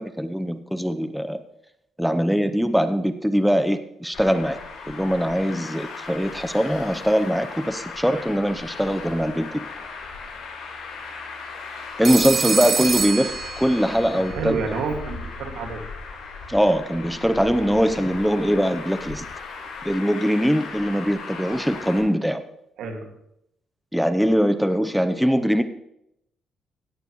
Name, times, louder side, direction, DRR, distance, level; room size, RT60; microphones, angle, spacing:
voice 1, 0.0-1.4 2.0-4.6 4.9-9.6 12.0-14.6 16.5-19.3 19.8-22.4 23.9-25.6, equal, ahead, 10 dB, 0.7 m, -22 dB
Traffic noise roadway noise, 4.1-22.0, left 4 dB, 75° left, 5.2 m, -37 dB
Telephone, 12.0-14.1, right 6 dB, 45° right, 0.5 m, -25 dB
voice 2, 14.3-15.9 22.8-23.1, right 4 dB, 80° right, 3 dB, 2.1 m, -29 dB
16.5 x 9.3 x 3.1 m, 0.80 s
cardioid pair, 90°, 0 cm